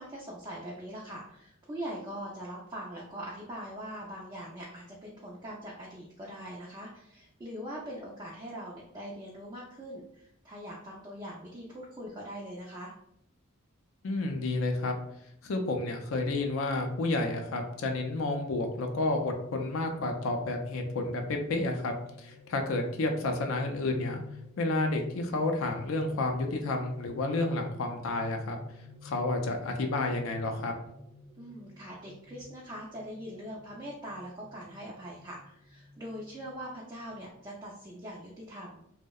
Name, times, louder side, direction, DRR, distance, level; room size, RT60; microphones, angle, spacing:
voice 1, 0.0-12.9 31.4-38.8, equal, 20° right, -4 dB, 0.3 m, -42 dB
voice 2, 14.0-15.0 15.4-24.2 24.6-28.6 29.0-30.7, left 2 dB, 70° left, 3 dB, 0.4 m, -30 dB
sound 1, 18.1-37.3, left 3 dB, 55° left, 0.8 m, -51 dB
2.6 x 2.0 x 2.2 m, 0.76 s
head